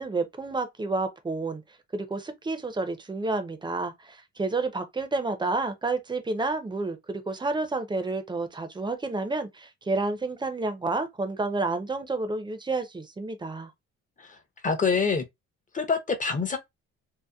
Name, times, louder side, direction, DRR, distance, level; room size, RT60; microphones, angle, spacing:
voice 1, 0.0-1.6 1.9-13.7, right 3 dB, 15° right, 0.5 m, -30 dB
voice 2, 14.6-15.2 15.7-16.6, left 5 dB, 25° left, 0.7 m, -25 dB
2.8 x 2.1 x 2.2 m
cardioid pair, 90°, 30 cm